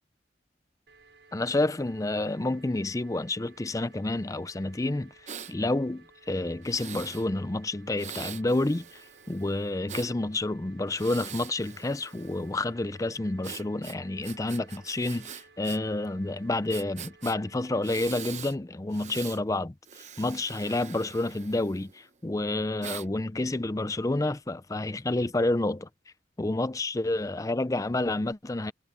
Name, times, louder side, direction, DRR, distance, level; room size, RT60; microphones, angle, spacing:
sound 1, 0.9-17.9, right 3 dB, 70° right, 5.7 m, -58 dB
voice 1, 1.3-5.1 5.5-9.0 9.3-19.7 20.2-25.9 26.4-28.7, left 2 dB, 20° left, 0.5 m, -29 dB
Breathing, 5.3-5.5 6.6-7.3 8.0-10.1 10.9-12.5 13.4-15.8 16.0-16.1 16.7-17.3 17.8-18.5 18.9-19.4 19.8-22.0 22.8-23.1, right 8 dB, 40° right, 0.8 m, -43 dB
head